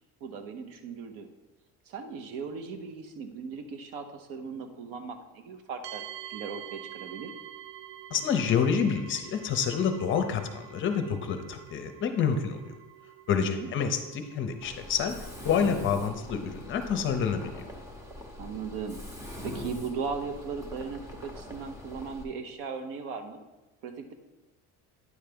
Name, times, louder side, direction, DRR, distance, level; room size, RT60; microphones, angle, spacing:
voice 1, 0.2-1.3 1.9-6.0 6.3-7.3 13.3-13.7 18.4-23.4 23.8-24.1, right 5 dB, 70° right, 7 dB, 0.9 m, -38 dB
sound 1, 5.8-21.5, right 11 dB, 40° right, 0.5 m, -49 dB
voice 2, 8.1-12.7 13.3-15.2 15.4-17.7, left 6 dB, 35° left, 7 dB, 0.6 m, -28 dB
Mechanisms, 14.6-22.2, left 1 dB, 10° right, 0.7 m, -42 dB
9.5 x 3.4 x 5.1 m, 1.1 s
cardioid pair, 150°, 36 cm